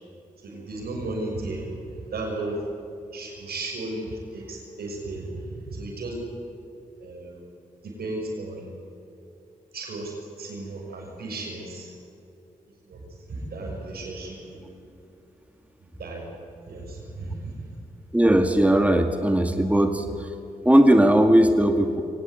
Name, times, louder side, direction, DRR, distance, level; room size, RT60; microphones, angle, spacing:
voice 1, 0.4-1.7 2.1-2.6 3.1-5.3 5.7-6.2 7.0-7.4 7.8-8.6 9.7-11.9 12.9-13.0 13.3-14.7 16.0-16.2 16.7-17.3, right 2 dB, 80° right, 1 dB, 6.2 m, -34 dB
voice 2, 18.1-20.0 20.7-22.0, right 1 dB, 10° right, 5 dB, 2.3 m, -18 dB
23.5 x 18.0 x 9.4 m, 2.8 s
supercardioid pair, 45°, 16 cm